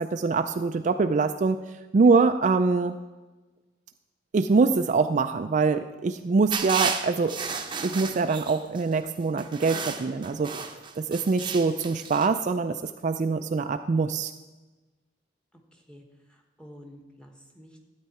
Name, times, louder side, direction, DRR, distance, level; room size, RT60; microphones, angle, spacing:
voice 1, 0.0-1.6 1.9-3.0 4.3-7.4 7.8-10.5 11.0-14.3, right 4 dB, 40° right, 8 dB, 0.3 m, -24 dB
sound 1, 6.5-8.8 9.4-12.3, right 5 dB, 25° right, 0.8 m, -33 dB
voice 2, 15.7-16.0 16.3-17.9, equal, 5° left, 2 dB, 1.4 m, -50 dB
13.0 x 8.9 x 4.2 m, 1.2 s
head